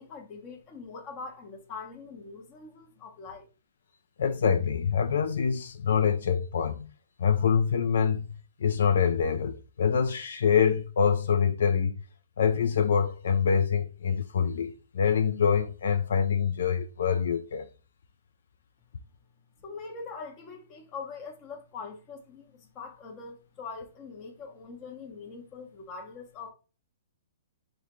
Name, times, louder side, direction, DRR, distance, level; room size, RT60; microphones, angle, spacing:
voice 1, 0.0-3.5 19.6-26.5, left 4 dB, 25° left, 0.8 m, -43 dB
voice 2, 4.2-6.9 7.2-8.3 8.6-12.0 12.4-17.7, left 7 dB, 75° left, 0.3 m, -25 dB
3.6 x 2.2 x 2.9 m
hypercardioid pair, 150°, 0 cm